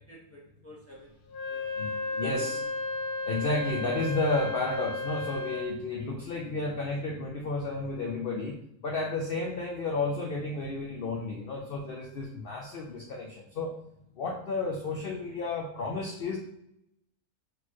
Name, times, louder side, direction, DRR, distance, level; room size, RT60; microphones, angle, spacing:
voice 1, 0.0-2.7, left 1 dB, 10° left, -6 dB, 1.0 m, -50 dB
Wind instrument woodwind instrument, 1.3-5.8, left 2 dB, 85° left, 1.2 m, -34 dB
voice 2, 2.2-2.6 3.2-8.6 8.8-13.7 14.2-16.4, left 3 dB, 70° left, 0 dB, 0.5 m, -32 dB
4.2 x 3.2 x 2.9 m, 0.77 s
omnidirectional pair, 1.6 m